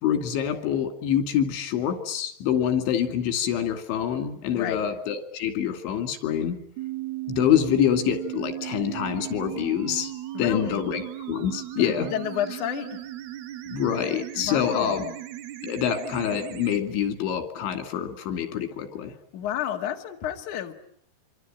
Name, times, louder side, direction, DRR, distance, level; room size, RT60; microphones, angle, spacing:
voice 1, 0.0-6.6 7.3-10.1 10.4-11.0 11.3-12.1 13.7-15.0 15.6-19.1, left 9 dB, 85° left, 4.9 m, -26 dB
sound 1, 6.8-16.8, right 15 dB, 70° right, 3.1 m, -36 dB
voice 2, 10.3-10.9 11.8-13.0 14.4-15.2 19.3-20.7, left 10 dB, 50° left, 2.8 m, -31 dB
26.0 x 25.5 x 9.0 m
omnidirectional pair, 5.2 m